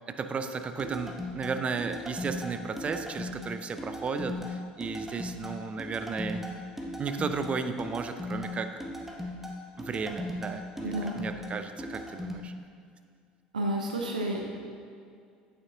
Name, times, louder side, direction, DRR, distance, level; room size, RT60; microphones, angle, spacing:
voice 1, 0.1-6.5 7.0-8.9 9.8-12.5, right 5 dB, 30° right, 8 dB, 0.5 m, -34 dB
sound 1, 0.8-12.4, left 1 dB, 5° right, 1.1 m, -38 dB
voice 2, 10.8-11.2 13.5-14.4, right 1 dB, 80° right, 0 dB, 0.7 m, -30 dB
8.6 x 6.8 x 2.7 m, 2.3 s
figure-of-eight pair, 65°, 4 cm